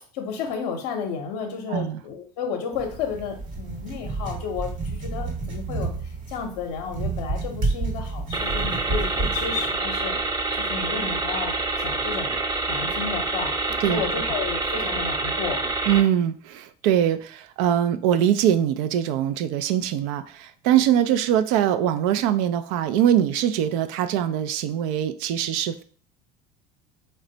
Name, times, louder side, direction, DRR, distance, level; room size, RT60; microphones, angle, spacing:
voice 1, 0.1-10.1 10.5-12.3 12.7-13.6 13.9-15.7, left 6 dB, 70° left, 4 dB, 0.7 m, -32 dB
voice 2, 1.7-2.0 13.8-14.0 15.9-25.8, right 10 dB, 65° right, 10 dB, 0.4 m, -22 dB
sound 1, 2.7-9.7, right 3 dB, 40° right, 1.1 m, -30 dB
sound 2, 8.3-16.0, right 3 dB, 20° right, 0.6 m, -27 dB
3.2 x 2.2 x 3.8 m, 0.43 s
hypercardioid pair, 80°, 20 cm